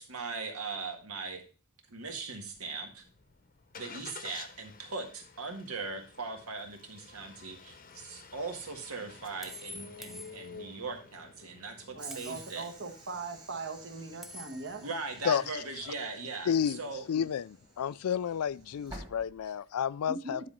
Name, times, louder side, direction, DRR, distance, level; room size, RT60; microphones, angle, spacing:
voice 1, 0.0-1.5 1.9-3.0 3.7-12.7 14.8-17.0, right 4 dB, 80° right, 1.7 m, -39 dB
Engine starting, 2.6-17.8, left 5 dB, 40° left, 0.8 m, -53 dB
sound 1, 7.9-8.1 9.4-10.8 12.1-12.7 14.2-14.9, left 1 dB, ahead, 0.3 m, -48 dB
voice 2, 11.9-14.8 20.1-20.3, right 3 dB, 55° right, 1.4 m, -40 dB
Train / Sliding door, 12.0-19.9, right 1 dB, 20° right, 1.7 m, -53 dB
voice 3, 16.5-16.8 17.1-20.4, left 8 dB, 90° left, 0.4 m, -31 dB
10.0 x 4.0 x 5.1 m
head